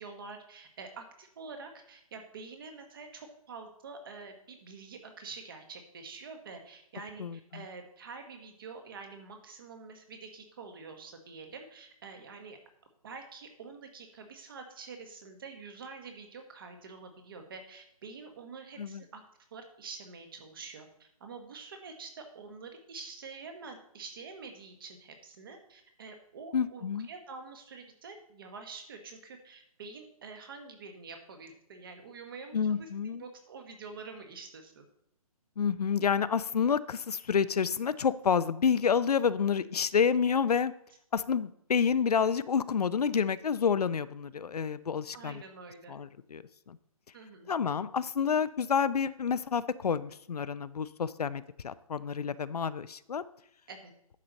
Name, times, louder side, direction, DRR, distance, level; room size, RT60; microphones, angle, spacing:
voice 1, 0.0-12.6 13.0-19.2 19.5-34.9 45.1-45.9 47.1-47.5 53.7-53.9, right 4 dB, 35° right, 5 dB, 1.4 m, -47 dB
voice 2, 7.2-7.6 18.8-19.0 26.5-27.1 32.5-33.2 35.6-40.7 41.1-45.4 45.9-46.4 46.7-46.8 47.5-53.2, left 6 dB, 85° left, 15 dB, 0.6 m, -29 dB
10.5 x 6.8 x 4.0 m, 0.72 s
hypercardioid pair, 170°, 19 cm